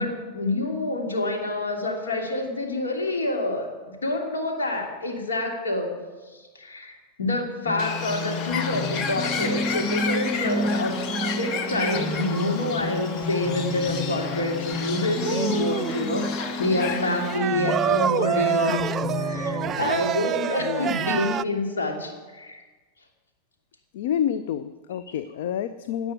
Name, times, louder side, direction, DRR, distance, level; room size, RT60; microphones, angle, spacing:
voice 1, 0.0-3.7 4.0-5.9 6.3-11.0 11.4-18.8 19.2-22.6, left 2 dB, 70° left, 1 dB, 2.9 m, -27 dB
sound 1, 7.7-19.7, left 1 dB, ahead, 3.1 m, -30 dB
Bird, 7.8-17.4, left 6 dB, 40° left, 1.2 m, -32 dB
sound 2, 15.2-16.0 17.2-21.4, right 9 dB, 25° right, 0.3 m, -27 dB
voice 2, 20.6-21.0 23.9-26.1, left 9 dB, 55° left, 11 dB, 0.6 m, -28 dB
17.5 x 6.1 x 9.5 m, 1.3 s
figure-of-eight pair, 90°, 0 cm